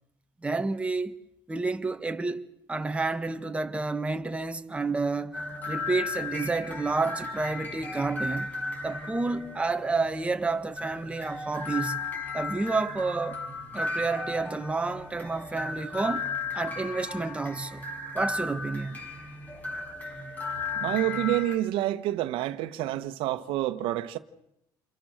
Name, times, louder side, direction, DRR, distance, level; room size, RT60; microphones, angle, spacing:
voice 1, 0.4-1.1 1.5-5.4 5.7-8.5 8.8-12.0 12.3-13.4 13.7-16.3 16.5-17.9 18.1-19.0, right 3 dB, 15° right, 1.6 m, -30 dB
sound 1, 5.3-21.5, left 3 dB, 20° left, 5.9 m, -35 dB
voice 2, 20.8-24.2, right 14 dB, 75° right, 1.4 m, -28 dB
29.0 x 23.0 x 6.7 m
cardioid pair, 110°, 9 cm